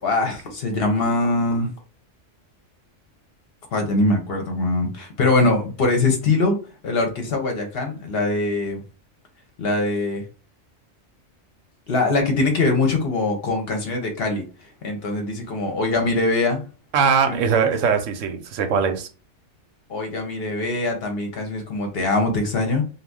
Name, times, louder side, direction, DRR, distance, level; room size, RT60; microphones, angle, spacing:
voice 1, 0.0-1.7 3.7-6.6 6.8-8.8 9.6-10.2 11.9-14.4 14.8-16.6 17.3-17.7 19.9-22.8, left 2 dB, 55° left, 3 dB, 0.9 m, -22 dB
voice 2, 16.9-19.1, right 6 dB, 80° right, 6 dB, 1.0 m, -21 dB
2.6 x 2.4 x 3.4 m, 0.34 s
omnidirectional pair, 1.3 m